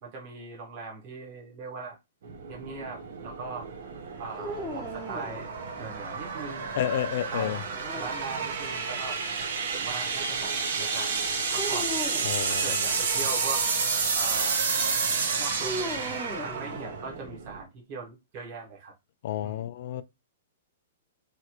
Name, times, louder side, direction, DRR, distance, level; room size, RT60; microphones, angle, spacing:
voice 1, 0.0-2.0 2.5-3.7 4.2-6.7 7.3-7.6 8.0-9.2 9.7-11.9 12.5-13.6 14.1-14.7 15.4-18.9 19.4-19.7, right 4 dB, 35° right, 1.0 m, -40 dB
sound 1, 2.2-17.6, right 5 dB, 70° right, 0.7 m, -30 dB
sound 2, 4.4-5.9 7.6-8.7 11.6-12.4 15.6-17.3, equal, ahead, 0.6 m, -37 dB
voice 2, 6.7-7.6 12.2-12.8 19.2-20.0, left 12 dB, 55° left, 0.3 m, -30 dB
3.1 x 2.4 x 2.9 m
hypercardioid pair, 160°, 0 cm